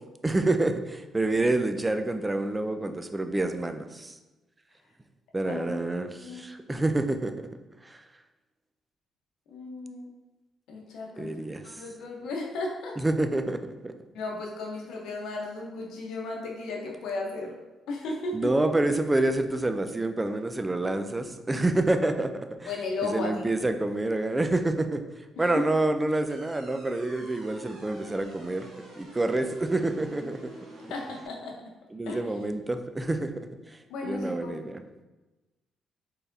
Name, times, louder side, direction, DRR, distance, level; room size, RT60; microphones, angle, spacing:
voice 1, 0.2-4.1 5.3-7.3 7.8-8.0 11.2-11.7 13.0-13.9 18.3-22.7 23.0-25.0 25.4-28.7 29.0-30.5 31.9-33.5 34.0-34.8, right 2 dB, 15° right, 8 dB, 0.3 m, -27 dB
voice 2, 5.4-6.6 9.5-10.1 10.7-12.9 14.1-17.6 17.9-18.5 22.7-23.5 25.4-25.6 30.9-31.6 32.1-32.2 33.9-34.7, left 3 dB, 85° left, -1 dB, 0.8 m, -35 dB
sound 1, 26.3-31.3, right 1 dB, 90° right, 1.1 m, -48 dB
4.3 x 3.4 x 2.6 m, 1.1 s
cardioid pair, 90°, 0 cm